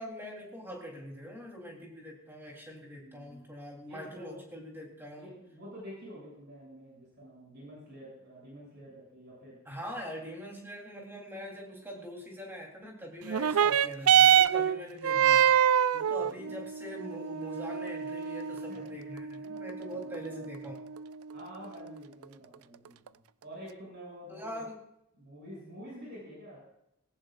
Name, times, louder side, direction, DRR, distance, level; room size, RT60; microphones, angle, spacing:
voice 1, 0.0-5.3 9.7-20.8 24.3-24.8, equal, 10° right, -1 dB, 3.4 m, -43 dB
voice 2, 3.0-3.4 3.9-4.4 5.1-9.6 13.2-13.6 16.2-16.5 18.7-19.0 19.9-20.5 21.3-24.6 25.1-26.6, equal, 50° right, -4 dB, 7.1 m, -48 dB
sound 1, 13.3-22.2 23.1-23.2, right 9 dB, 90° right, 0.4 m, -26 dB
19.0 x 17.5 x 2.5 m, 0.80 s
head